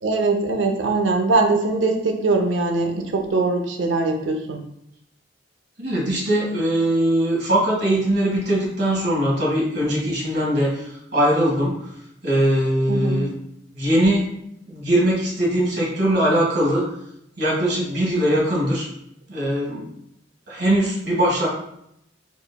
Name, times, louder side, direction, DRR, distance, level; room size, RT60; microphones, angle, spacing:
voice 1, 0.0-4.6 12.9-13.3, right 3 dB, 80° right, 4 dB, 0.6 m, -21 dB
voice 2, 5.8-11.8 12.2-13.4 13.7-14.3 14.7-16.8 17.4-18.9 19.3-19.9 20.5-21.5, right 1 dB, 60° right, -3 dB, 1.7 m, -21 dB
4.8 x 4.0 x 2.2 m, 0.76 s
head